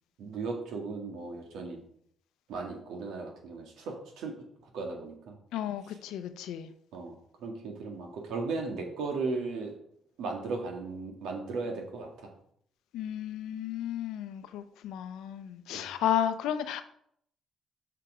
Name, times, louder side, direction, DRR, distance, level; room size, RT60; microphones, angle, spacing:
voice 1, 0.2-1.8 2.5-4.3 4.6-5.4 6.9-9.8 10.2-12.3 15.7-15.9, right 3 dB, 85° right, 2 dB, 1.8 m, -36 dB
voice 2, 5.5-6.7 12.9-16.8, left 10 dB, 90° left, 10 dB, 0.7 m, -33 dB
6.8 x 5.7 x 5.1 m, 0.68 s
cardioid pair, 90°, 0 cm